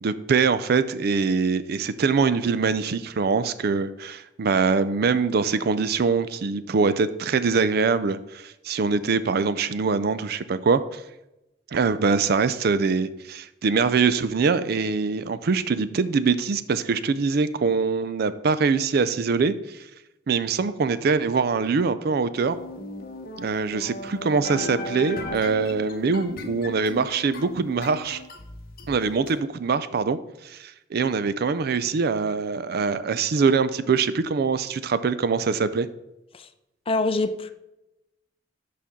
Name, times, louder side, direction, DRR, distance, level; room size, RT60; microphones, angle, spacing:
voice 1, 0.0-11.0 11.7-19.8 20.3-22.6 23.4-28.2 28.9-30.2 30.4-35.9, right 5 dB, 55° right, 0.4 m, -23 dB
sound 1, 22.5-29.4, left 2 dB, 55° left, 0.9 m, -37 dB
voice 2, 36.9-37.5, left 2 dB, 30° left, 0.5 m, -25 dB
11.0 x 4.3 x 3.6 m
head